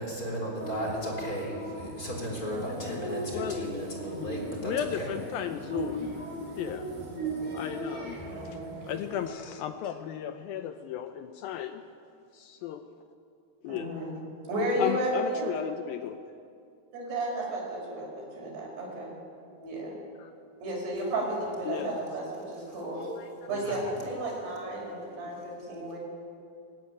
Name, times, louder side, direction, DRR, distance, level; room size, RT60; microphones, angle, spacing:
voice 1, 0.0-5.1 23.5-23.9 25.0-25.3, equal, 20° left, -1 dB, 3.7 m, -35 dB
sound 1, 0.6-9.3, right 1 dB, 55° right, 7.3 m, -38 dB
voice 2, 4.6-6.2 6.6-6.9 7.5-8.2 8.9-11.8 12.3-12.8 13.6-13.9 14.8-16.2 20.2-20.3 21.7-22.0 23.2-23.3 23.7-23.8 24.4-24.5, left 10 dB, 80° left, 8 dB, 2.2 m, -35 dB
voice 3, 8.3-8.7 13.7-14.1 14.5-15.6 16.9-18.1 18.4-19.1 19.6-19.9 20.6-23.1 23.5-26.0, right 1 dB, 75° right, -3 dB, 7.5 m, -33 dB
18.5 x 15.5 x 9.5 m, 2.4 s
omnidirectional pair, 4.8 m